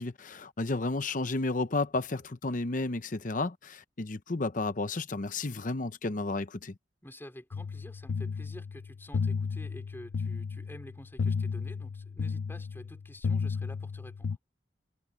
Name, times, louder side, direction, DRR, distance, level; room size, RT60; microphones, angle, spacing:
voice 1, 0.0-6.7, left 2 dB, 45° left, 0.8 m, -32 dB
voice 2, 7.0-14.4, left 1 dB, 10° left, 4.5 m, -49 dB
sound 1, 7.5-14.4, left 5 dB, 80° left, 0.5 m, -33 dB
head